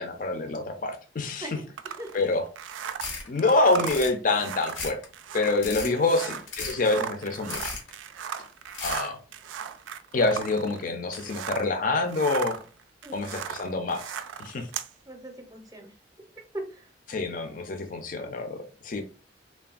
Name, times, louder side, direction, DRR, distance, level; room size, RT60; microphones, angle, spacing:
voice 1, 0.0-1.4 2.1-2.4 3.3-5.0 5.3-7.8 8.8-9.2 10.1-12.6 13.1-14.0 14.4-14.7 17.1-19.0, left 3 dB, 45° left, 0.5 m, -26 dB
voice 2, 1.4-2.1 6.2-6.4 13.0-13.3 15.1-15.9 16.5-16.9, right 1 dB, 20° right, 0.6 m, -40 dB
sound 1, 1.8-11.8 12.0-14.9, right 8 dB, 80° right, 0.3 m, -37 dB
sound 2, 2.8-3.3 3.7-4.1 4.6-5.0 5.4-5.9 6.5-6.9 7.3-7.9 8.7-9.0, left 4 dB, 85° left, 0.9 m, -35 dB
3.3 x 2.3 x 2.3 m
head